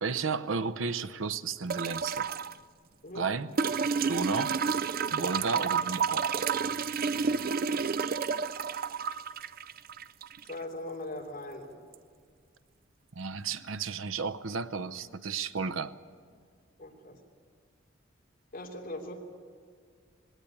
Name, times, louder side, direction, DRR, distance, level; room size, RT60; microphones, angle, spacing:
voice 1, 0.0-2.3 3.1-3.5 4.1-4.6 5.1-6.3 13.2-16.0, right 5 dB, 85° right, 14 dB, 0.7 m, -33 dB
sound 1, 1.7-2.5 3.6-10.6 11.9-12.0, right 6 dB, 50° right, 0.5 m, -30 dB
voice 2, 10.4-11.8 16.8-17.2 18.5-19.1, left 1 dB, 45° left, 1 dB, 3.1 m, -40 dB
19.5 x 17.5 x 8.4 m, 2.1 s
head